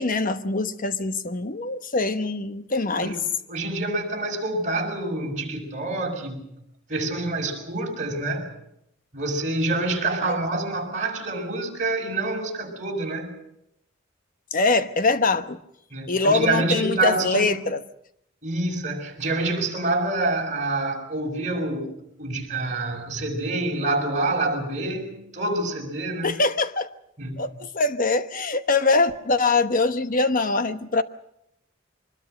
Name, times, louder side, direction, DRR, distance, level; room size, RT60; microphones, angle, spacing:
voice 1, 0.0-3.2 10.2-10.4 14.5-15.6 16.1-17.8 26.2-26.9 27.4-31.0, left 3 dB, 45° left, 1.1 m, -23 dB
voice 2, 3.5-6.4 6.9-8.5 9.1-13.4 15.9-17.6 18.4-26.4 27.2-27.5, right 2 dB, 40° right, 6.1 m, -27 dB
24.5 x 21.0 x 6.6 m
head